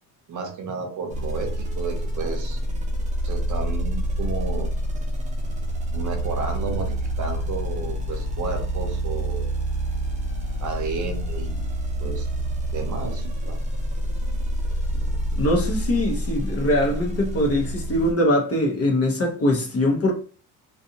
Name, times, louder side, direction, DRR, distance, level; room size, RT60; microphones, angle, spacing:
voice 1, 0.3-2.6 3.2-4.7 5.9-9.6 10.6-11.7 12.0-12.3 12.7-13.6, right 4 dB, 45° right, 0.8 m, -32 dB
sound 1, 1.1-18.1, right 1 dB, 20° right, 0.8 m, -27 dB
voice 2, 15.4-20.1, left 1 dB, 35° left, 0.9 m, -22 dB
2.5 x 2.5 x 2.8 m
cardioid pair, 105°, 41 cm